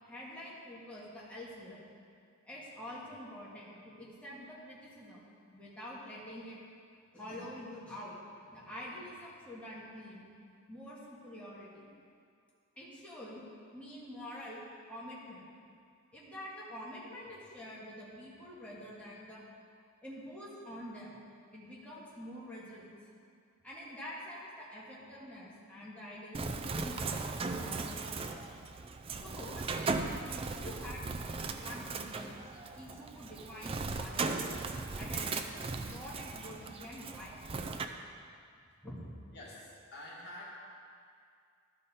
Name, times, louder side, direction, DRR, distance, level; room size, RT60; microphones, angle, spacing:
voice 1, 0.0-1.8 2.5-5.2 5.5-6.6 7.1-10.3 10.7-11.9 12.8-13.4 13.7-15.4 16.1-19.4 20.0-21.2 21.5-23.0 23.6-28.1 29.2-32.4 32.7-34.6 35.0-37.4 38.8-39.0, left 1 dB, 5° left, -7 dB, 1.7 m, -47 dB
Bird, 26.3-37.8, right 3 dB, 25° right, 0.4 m, -38 dB
voice 2, 39.3-40.5, left 1 dB, 55° left, -5 dB, 1.8 m, -47 dB
12.5 x 5.2 x 4.2 m, 2.3 s
head